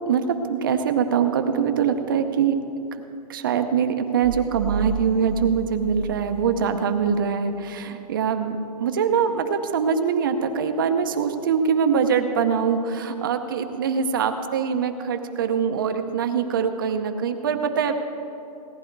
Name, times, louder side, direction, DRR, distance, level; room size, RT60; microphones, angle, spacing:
voice 1, 0.1-2.6 2.9-3.0 3.3-17.9, right 6 dB, 30° right, 7 dB, 0.7 m, -23 dB
sound 1, 4.2-6.8, right 7 dB, 65° right, 0.8 m, -32 dB
17.5 x 10.5 x 4.6 m, 2.9 s
hypercardioid pair, 180°, 21 cm